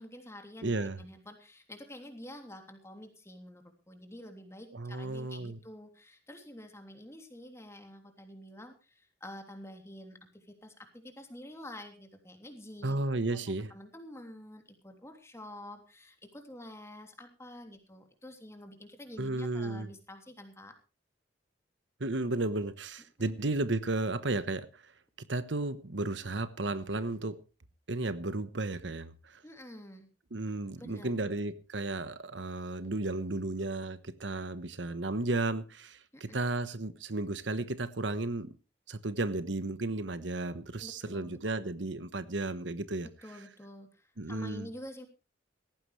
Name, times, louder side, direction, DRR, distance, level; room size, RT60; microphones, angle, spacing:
voice 1, 0.0-13.0 13.3-20.7 23.2-23.5 29.4-30.1 30.8-31.1 36.1-36.4 40.8-41.4 43.0-45.1, left 1 dB, 15° left, 3.1 m, -48 dB
voice 2, 0.6-1.0 4.7-5.6 12.8-13.7 19.2-19.9 22.0-24.9 25.3-27.4 27.9-29.4 30.3-38.5 38.9-43.1 44.2-44.7, right 2 dB, 85° right, 1.2 m, -34 dB
18.0 x 15.0 x 3.3 m
head